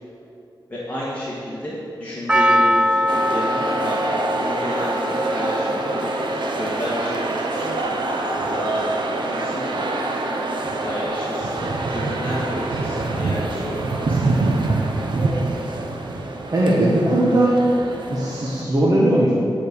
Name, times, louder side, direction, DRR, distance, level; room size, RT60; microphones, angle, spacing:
voice 1, 0.7-6.1 6.5-8.2 8.5-8.9 9.2-10.2 10.8-14.2, equal, 20° left, -8 dB, 1.7 m, -31 dB
Percussion, 2.3-6.7 6.9-7.0, equal, 10° right, 0.3 m, -22 dB
sound 1, 3.1-18.6, right 2 dB, 70° right, 0.8 m, -25 dB
voice 2, 16.5-17.6 18.1-19.3, right 1 dB, 45° right, -6 dB, 1.5 m, -18 dB
9.5 x 5.3 x 6.7 m, 2.6 s
wide cardioid pair, 100°, 8 cm